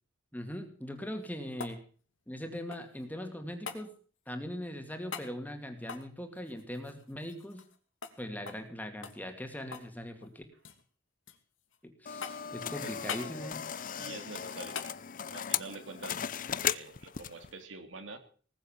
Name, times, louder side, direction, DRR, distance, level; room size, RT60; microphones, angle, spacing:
voice 1, 0.3-1.8 2.3-3.9 4.3-7.6 8.2-10.4 11.8-13.6, equal, 10° left, 6 dB, 2.4 m, -40 dB
sound 1, 1.0-3.1 3.7-3.9 5.1-5.3 5.8-8.2 8.5-8.7 9.0-9.9 10.2-10.8 11.3-11.8 12.2-12.6 13.1-13.3 14.7-15.0 17.3-17.4, left 5 dB, 80° left, 2.5 m, -43 dB
sound 2, 12.1-17.5, left 8 dB, 45° left, 0.6 m, -37 dB
voice 2, 14.0-14.8 15.3-16.2 16.6-18.2, right 3 dB, 75° right, 7 dB, 3.0 m, -46 dB
19.5 x 8.0 x 7.4 m, 0.43 s
head